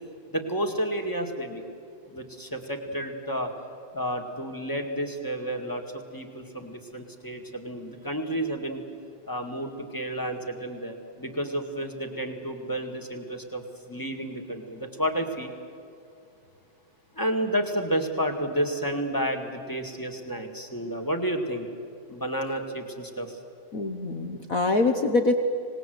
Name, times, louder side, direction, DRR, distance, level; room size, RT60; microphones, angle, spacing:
voice 1, 0.3-1.6 2.1-3.5 3.9-8.9 9.2-15.5 17.1-21.7 22.1-23.4, right 1 dB, 10° left, 5 dB, 1.4 m, -31 dB
voice 2, 23.7-25.4, left 3 dB, 70° left, 6 dB, 0.8 m, -24 dB
26.0 x 19.5 x 7.9 m, 2.6 s
omnidirectional pair, 3.3 m